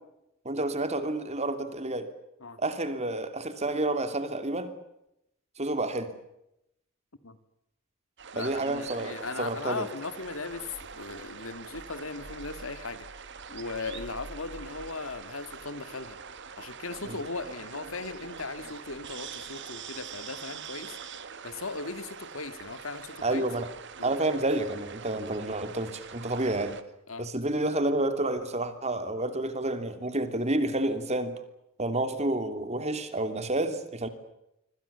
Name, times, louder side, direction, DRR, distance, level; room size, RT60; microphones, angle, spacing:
voice 1, 0.4-2.1 2.6-4.7 5.6-6.1 8.3-9.9 17.1-17.2 23.2-23.7 24.0-26.8 27.2-31.3 31.8-34.1, right 2 dB, 30° right, 9 dB, 2.9 m, -29 dB
sound 1, 8.2-26.8, right 6 dB, 60° right, 2.0 m, -44 dB
voice 2, 8.3-13.1 13.5-16.2 16.6-21.0 21.4-23.5 24.0-24.2 27.1-27.3, left 3 dB, 70° left, 11 dB, 2.2 m, -38 dB
26.5 x 25.5 x 7.0 m, 0.84 s
head